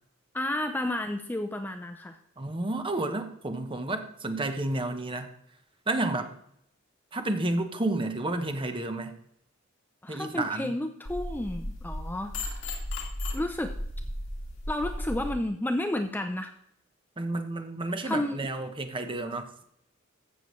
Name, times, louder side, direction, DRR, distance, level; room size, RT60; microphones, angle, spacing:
voice 1, 0.3-2.2 10.0-12.3 13.3-13.8 14.7-16.5 18.0-18.4, left 1 dB, 10° left, 6 dB, 0.5 m, -31 dB
voice 2, 2.4-5.3 5.9-6.3 7.1-9.2 10.1-10.7 17.2-19.4, right 2 dB, 25° right, 6 dB, 1.0 m, -31 dB
sound 1, 11.0-15.3, left 1 dB, 70° left, 2.0 m, -35 dB
14.5 x 6.9 x 3.2 m, 0.72 s
head